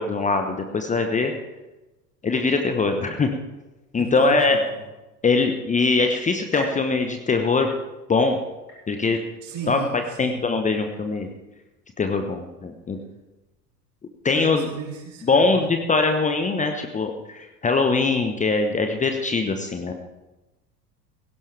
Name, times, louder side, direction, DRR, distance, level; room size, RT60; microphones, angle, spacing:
voice 1, 0.0-1.3 2.2-3.3 3.9-4.6 5.2-7.7 8.1-8.4 8.9-9.2 9.7-9.8 10.2-11.3 12.0-13.0 14.2-14.7 15.3-19.9, left 4 dB, 15° left, 5 dB, 1.1 m, -22 dB
voice 2, 4.0-4.8 9.4-10.4 14.3-15.6, right 5 dB, 35° right, -1 dB, 6.0 m, -35 dB
sound 1, 6.5-8.2 8.7-9.3 9.8-9.9 10.8-10.9, equal, 90° left, 5.5 m, -40 dB
17.5 x 16.5 x 3.4 m, 1.1 s
figure-of-eight pair, 80°, 48 cm